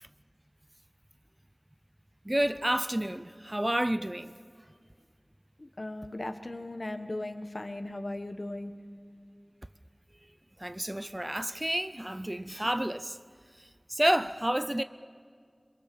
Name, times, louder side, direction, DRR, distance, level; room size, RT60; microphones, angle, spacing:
voice 1, 2.2-4.3 10.6-13.2 13.9-14.8, right 1 dB, 25° right, 0.5 m, -29 dB
voice 2, 5.6-8.7, left 1 dB, 60° left, 1.2 m, -37 dB
27.0 x 22.0 x 7.0 m
wide cardioid pair, 45°, 0 cm